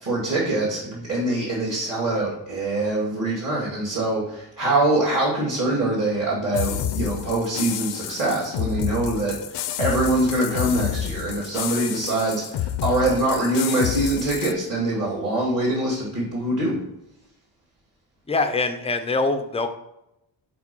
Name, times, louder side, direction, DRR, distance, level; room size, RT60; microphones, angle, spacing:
voice 1, 0.0-16.7, right 2 dB, 45° right, -8 dB, 2.3 m, -24 dB
sound 1, 6.5-14.5, left 11 dB, 65° left, 0.5 m, -29 dB
voice 2, 18.3-19.7, left 3 dB, 15° left, 7 dB, 0.4 m, -23 dB
5.0 x 4.4 x 5.4 m, 0.85 s
wide cardioid pair, 170°, 45 cm